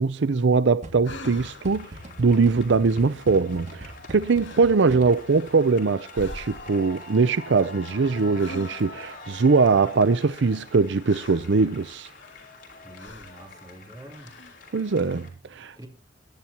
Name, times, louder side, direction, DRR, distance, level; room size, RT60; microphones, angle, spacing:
voice 1, 0.0-1.9 2.2-12.1 14.7-15.9, right 4 dB, 70° right, 0.5 m, -22 dB
sound 1, 0.8-5.4, right 1 dB, 40° right, 2.5 m, -42 dB
sound 2, 1.0-1.8 3.9-4.1 4.4-4.8 5.2-5.8 6.1-6.9 8.4-9.1 10.2-11.6 12.1-12.7 13.0-13.5 14.1-14.7, left 2 dB, 85° left, 2.2 m, -44 dB
sound 3, 1.3-15.3, left 3 dB, 50° left, 5.1 m, -45 dB
voice 2, 12.8-14.4 15.7-15.9, right 1 dB, 20° right, 3.8 m, -45 dB
22.5 x 11.0 x 2.9 m
head